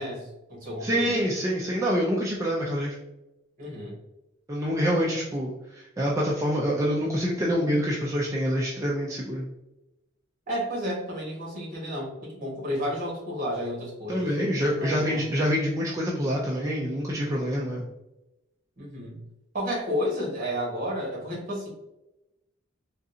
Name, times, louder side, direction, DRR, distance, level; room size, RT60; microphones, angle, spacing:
voice 1, 0.0-1.1 3.6-4.0 10.5-14.5 14.8-15.2 18.8-19.2 19.5-21.7, equal, 45° right, -3 dB, 1.4 m, -31 dB
voice 2, 0.8-2.9 4.5-9.5 14.1-17.9, equal, 15° right, -4 dB, 0.4 m, -26 dB
3.8 x 2.4 x 2.7 m, 0.94 s
head